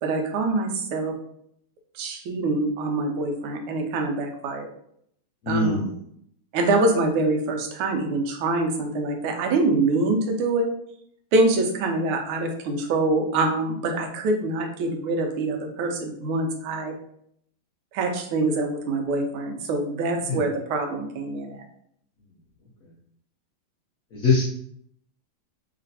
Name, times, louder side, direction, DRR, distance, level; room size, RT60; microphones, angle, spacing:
voice 1, 0.0-1.1 2.0-4.7 5.5-5.9 6.5-10.7 11.3-16.9 17.9-21.6, right 2 dB, 85° right, 3 dB, 1.5 m, -25 dB
voice 2, 5.4-6.0 20.2-20.4 24.1-24.4, left 3 dB, 70° left, -6 dB, 0.8 m, -22 dB
3.3 x 3.0 x 2.7 m, 0.69 s
omnidirectional pair, 2.3 m